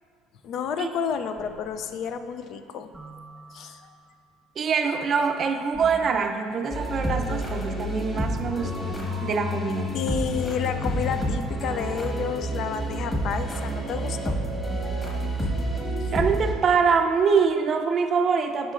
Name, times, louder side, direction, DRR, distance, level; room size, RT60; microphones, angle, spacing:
voice 1, 0.4-2.9 3.5-3.9 9.9-14.4 16.0-16.1, left 7 dB, 60° left, 9 dB, 0.4 m, -30 dB
sound 1, 1.4-2.2 2.9-4.0 5.7-6.3 7.6-8.8 9.0-16.4, right 2 dB, 10° right, 0.8 m, -41 dB
voice 2, 4.6-10.0 16.1-18.7, right 5 dB, 40° right, 6 dB, 0.5 m, -24 dB
sound 2, 6.7-16.5, equal, 15° left, 1.4 m, -29 dB
11.0 x 5.1 x 2.5 m, 2.3 s
cardioid pair, 110°, 0 cm